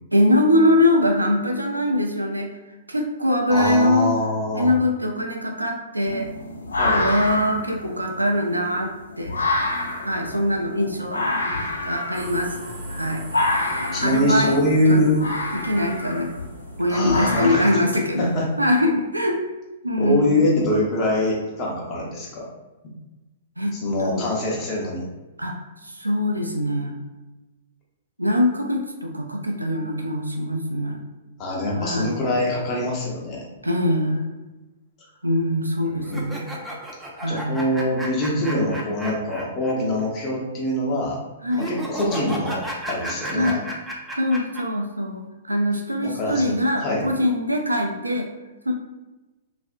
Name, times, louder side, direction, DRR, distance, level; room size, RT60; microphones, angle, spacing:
voice 1, 0.1-2.5 2.9-4.1 4.5-6.3 6.9-9.3 10.0-11.2 11.8-12.5 12.9-13.2 14.0-14.6 14.9-15.0 15.5-16.3 16.8-18.3 18.6-19.4 19.8-20.4 23.6-24.3 25.4-25.6 25.8-27.0 28.2-31.0 31.8-32.2 33.6-34.3 35.2-36.5 37.2-37.6 41.4-41.7 43.3-43.6 44.2-48.3 48.7-48.8, left 1 dB, 85° right, 2 dB, 0.3 m, -22 dB
voice 2, 3.5-4.8 6.8-7.0 13.9-15.2 16.9-17.7 18.2-18.5 20.0-22.5 22.8-22.9 23.7-25.1 31.4-33.5 35.8-36.2 37.3-41.2 41.5-43.6 46.0-46.6 46.8-47.0, left 1 dB, 30° left, -3 dB, 0.7 m, -24 dB
sound 1, 6.0-18.4, left 2 dB, 75° left, 0.5 m, -28 dB
sound 2, 12.1-19.0, equal, 65° right, 0.7 m, -40 dB
sound 3, 36.0-39.7 40.0-40.1 41.5-44.6, right 1 dB, 5° right, 0.4 m, -33 dB
2.4 x 2.1 x 2.4 m, 1.1 s
figure-of-eight pair, 110°, 0 cm